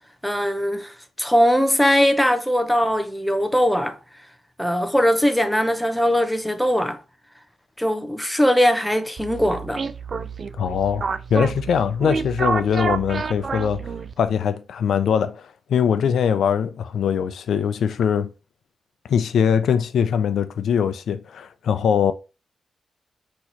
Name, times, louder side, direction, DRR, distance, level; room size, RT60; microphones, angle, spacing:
voice 1, 0.2-0.9 1.2-4.0 4.6-7.0 7.8-9.8, equal, 5° left, 0.6 m, -20 dB
sound 1, 9.2-14.3, right 5 dB, 45° right, 0.3 m, -28 dB
voice 2, 10.5-18.3 19.1-22.1, left 7 dB, 85° left, 0.4 m, -22 dB
4.1 x 2.9 x 4.2 m
wide cardioid pair, 140°, 0 cm